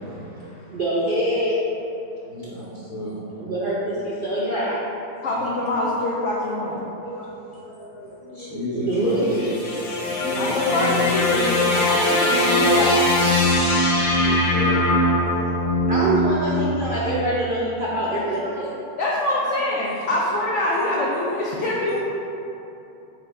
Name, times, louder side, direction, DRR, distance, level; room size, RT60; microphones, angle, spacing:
voice 1, 0.0-1.6 3.4-4.8 8.7-9.5 15.9-18.7, right 1 dB, 70° right, -8 dB, 0.5 m, -25 dB
voice 2, 2.3-3.1 5.3-5.4 6.0-6.1 7.0-9.4 10.1-11.1 14.2-14.8 18.0-18.6 19.3-19.8 20.2-20.3 20.7-22.0, equal, 40° left, -9 dB, 0.5 m, -33 dB
voice 3, 5.2-6.9 10.3-13.1 19.0-22.0, left 1 dB, 80° left, -4 dB, 0.6 m, -24 dB
sound 1, 9.0-17.3, left 1 dB, 60° left, 0.9 m, -21 dB
5.0 x 2.2 x 4.6 m, 2.9 s
omnidirectional pair, 1.8 m